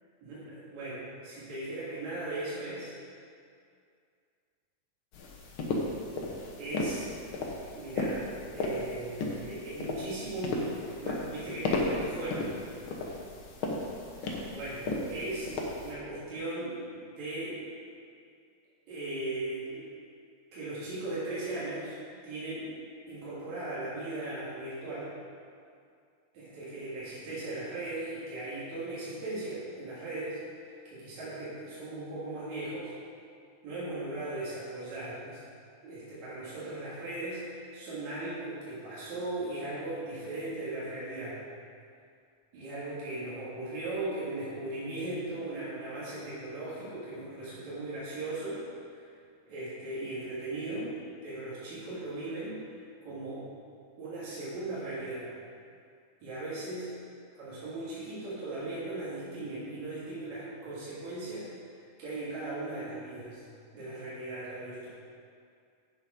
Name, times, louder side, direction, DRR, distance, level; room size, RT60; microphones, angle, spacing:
voice 1, 0.2-2.9 6.6-7.1 7.7-12.6 14.5-17.6 18.9-19.9 20.5-22.7 23.1-25.1 26.3-32.9 33.6-35.4 35.8-41.4 42.5-48.6 48.9-49.1 49.5-51.0 51.2-52.6 53.0-53.5 54.0-55.3 56.2-56.9 57.4-61.5 62.0-63.4 63.7-64.9, right 2 dB, 70° right, -9 dB, 3.3 m, -38 dB
sound 1, 5.1-15.9, left 2 dB, 60° left, 1.4 m, -35 dB
8.5 x 7.5 x 5.0 m, 2.3 s
omnidirectional pair, 3.4 m